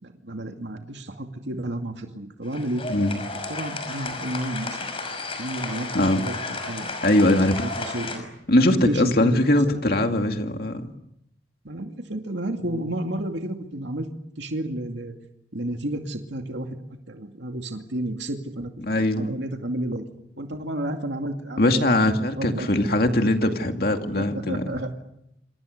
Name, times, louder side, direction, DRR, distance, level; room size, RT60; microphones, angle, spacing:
voice 1, 0.0-2.8 3.5-4.9 5.4-7.0 7.6-8.3 8.6-9.8 11.6-14.1 14.4-15.2 15.5-16.8 17.1-18.7 19.0-20.0 20.4-22.1 22.4-23.0 24.2-24.9, right 1 dB, 75° right, 4 dB, 2.4 m, -31 dB
sound 1, 2.4-8.2, left 3 dB, 30° left, 5.8 m, -33 dB
voice 2, 7.0-7.7 8.5-10.9 18.8-19.3 21.6-24.8, left 1 dB, 55° left, 5 dB, 2.3 m, -21 dB
27.5 x 27.5 x 6.7 m, 0.81 s
head